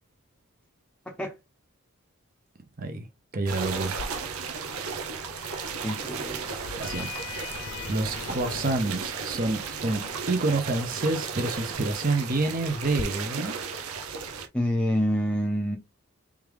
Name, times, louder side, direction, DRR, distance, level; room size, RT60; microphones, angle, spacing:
voice 1, 3.3-3.9 6.8-7.1 7.9-13.5, right 2 dB, 40° right, 0.7 m, -28 dB
sound 1, 3.5-14.5, right 5 dB, 80° right, 0.8 m, -35 dB
Sliding door, 3.9-13.0, left 5 dB, 80° left, 0.5 m, -42 dB
voice 2, 5.8-6.5 14.5-15.8, equal, 5° left, 0.7 m, -27 dB
3.4 x 3.4 x 3.3 m
head